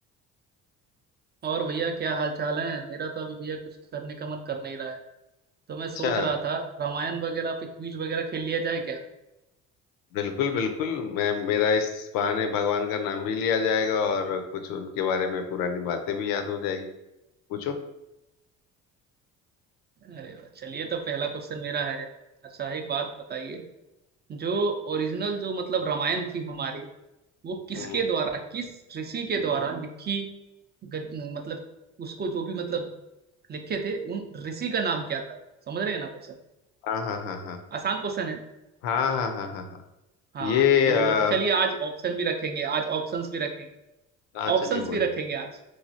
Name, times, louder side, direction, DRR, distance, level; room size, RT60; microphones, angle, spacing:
voice 1, 1.4-5.0 5.7-9.0 20.0-22.1 22.4-23.6 24.3-26.9 27.4-30.3 30.8-31.6 32.0-32.9 33.5-35.4 35.7-36.4 37.7-38.4 40.3-43.7 44.5-45.5, right 5 dB, 30° right, 4 dB, 0.4 m, -30 dB
voice 2, 6.0-6.3 10.1-16.9 17.5-17.7 27.8-28.0 36.8-37.6 38.8-39.7 40.4-41.3 44.3-45.0, left 6 dB, 80° left, 7 dB, 0.5 m, -26 dB
3.1 x 2.3 x 2.6 m, 0.92 s
supercardioid pair, 75°, 34 cm